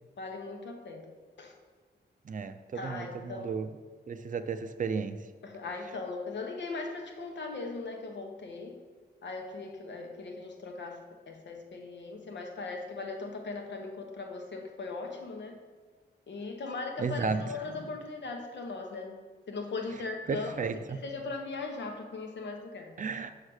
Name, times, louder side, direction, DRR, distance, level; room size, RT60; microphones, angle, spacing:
voice 1, 0.2-1.0 1.4-1.5 2.7-3.6 5.4-8.7 9.2-15.6 16.3-19.2 19.5-23.0, left 3 dB, 75° left, 3 dB, 1.0 m, -39 dB
voice 2, 2.2-3.7 4.1-5.2 17.0-17.4 20.3-21.0 23.0-23.3, right 5 dB, 45° right, 10 dB, 0.4 m, -33 dB
6.4 x 4.9 x 6.3 m, 1.4 s
wide cardioid pair, 180°, 18 cm